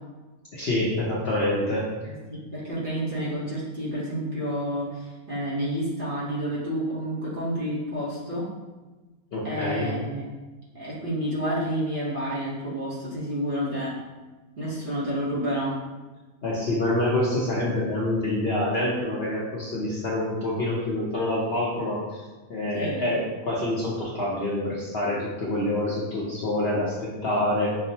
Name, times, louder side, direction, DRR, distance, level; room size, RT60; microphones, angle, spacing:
voice 1, 0.5-1.9 9.3-9.9 16.4-22.2 22.5-27.8, left 1 dB, 55° left, -5 dB, 0.7 m, -26 dB
voice 2, 2.0-8.5 9.4-10.2 10.7-13.9 14.6-15.8 22.7-23.0, equal, 40° right, -7 dB, 1.0 m, -29 dB
5.9 x 2.0 x 2.7 m, 1.2 s
omnidirectional pair, 1.5 m